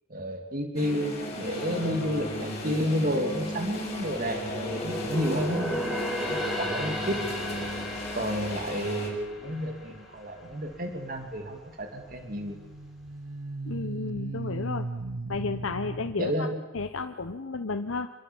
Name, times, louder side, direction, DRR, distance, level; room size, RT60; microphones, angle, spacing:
voice 1, 0.1-7.2 8.1-12.6 16.2-16.6, equal, 45° right, 4 dB, 2.9 m, -31 dB
sound 1, 0.7-9.1, left 1 dB, 30° left, 7.1 m, -36 dB
sound 2, 3.5-10.9 11.2-11.5 12.0-12.7 13.1-13.2, equal, ahead, 5.5 m, -35 dB
sound 3, 9.5-9.9 12.1-16.1, right 2 dB, 85° right, 0.8 m, -37 dB
voice 2, 13.7-14.9 15.3-16.5 16.7-18.1, left 3 dB, 80° left, 7 dB, 1.0 m, -32 dB
28.0 x 22.0 x 7.2 m, 1.1 s
head